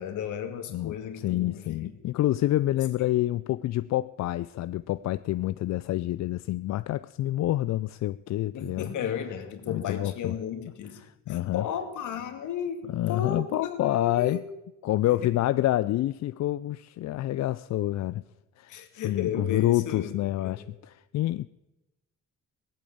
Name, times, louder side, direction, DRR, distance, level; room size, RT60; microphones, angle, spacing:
voice 1, 0.0-1.9 2.8-2.9 8.5-11.0 11.3-14.4 15.1-15.2 18.7-20.1 20.4-20.6, left 8 dB, 80° left, 7 dB, 2.1 m, -34 dB
voice 2, 0.7-8.9 9.7-10.3 11.0-11.6 12.9-14.4 14.8-18.2 18.6-18.8 19.0-21.5, left 15 dB, 60° left, 15 dB, 0.4 m, -27 dB
18.0 x 8.7 x 8.7 m, 0.98 s
cardioid pair, 90°, 30 cm